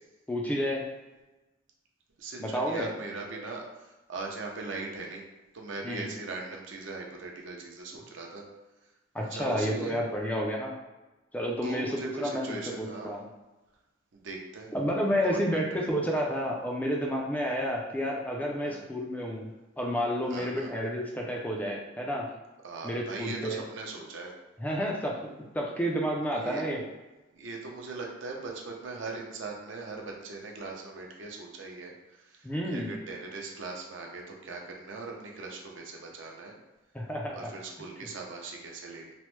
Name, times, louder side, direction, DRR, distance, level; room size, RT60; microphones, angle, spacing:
voice 1, 0.3-0.9 2.4-2.9 5.8-6.1 9.1-10.7 11.3-13.2 14.7-19.5 19.8-22.3 22.8-23.6 24.6-26.8 32.4-32.9 36.9-37.5, equal, 10° left, -1 dB, 0.3 m, -30 dB
voice 2, 2.2-5.2 5.5-8.5 8.8-8.9 9.3-10.0 11.6-13.1 14.1-14.7 15.2-15.9 18.6-18.8 20.3-20.7 22.6-24.4 26.3-26.6 27.3-36.5 37.3-39.1, right 3 dB, 65° right, 0 dB, 0.6 m, -40 dB
3.1 x 2.0 x 3.0 m, 1.1 s
head